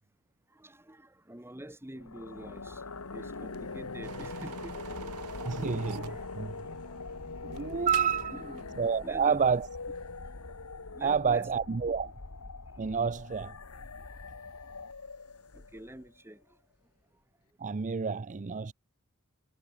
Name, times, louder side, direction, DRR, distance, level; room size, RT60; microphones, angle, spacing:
voice 1, 0.6-6.3 6.8-7.0 8.3-8.6 9.0-9.4 10.9-11.5 15.5-16.4, right 1 dB, 10° right, 1.9 m, -47 dB
sound 1, 2.0-16.1, left 3 dB, 90° left, 1.6 m, -42 dB
sound 2, 4.0-8.3 8.6-8.7, right 8 dB, 85° right, 0.6 m, -46 dB
voice 2, 5.5-6.5 7.4-8.4 8.8-9.7 11.0-12.1 12.8-13.5 17.6-18.7, right 6 dB, 35° right, 0.5 m, -29 dB
head